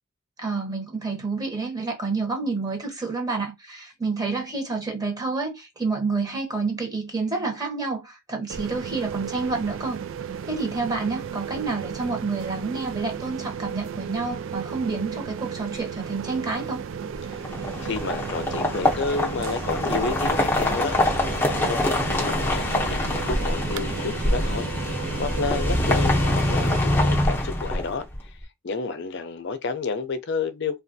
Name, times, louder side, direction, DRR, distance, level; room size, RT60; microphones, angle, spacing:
voice 1, 0.4-10.0 10.4-16.8, right 3 dB, 15° right, 0.9 m, -29 dB
sound 1, 8.5-26.8, right 7 dB, 65° right, 0.3 m, -34 dB
sound 2, 17.3-28.2, left 1 dB, 10° left, 0.6 m, -24 dB
voice 2, 17.8-21.0 21.5-28.0 28.6-30.8, left 4 dB, 55° left, 0.5 m, -30 dB
3.3 x 2.3 x 2.6 m
head